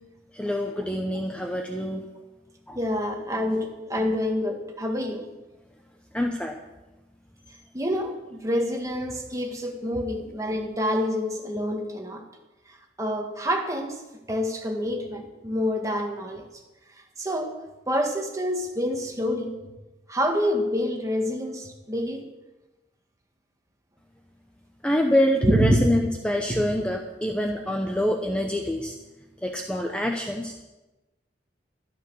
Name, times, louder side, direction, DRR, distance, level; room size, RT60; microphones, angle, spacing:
voice 1, 0.3-2.0 2.7-2.8 6.1-6.6 24.8-29.0 29.4-30.5, equal, 5° left, 2 dB, 0.8 m, -26 dB
voice 2, 2.8-5.3 7.7-12.2 13.0-16.5 17.2-17.6 17.9-19.5 20.1-22.3 25.4-25.9 26.5-26.6, equal, 20° right, 2 dB, 1.8 m, -27 dB
12.5 x 12.0 x 6.4 m, 1.1 s
head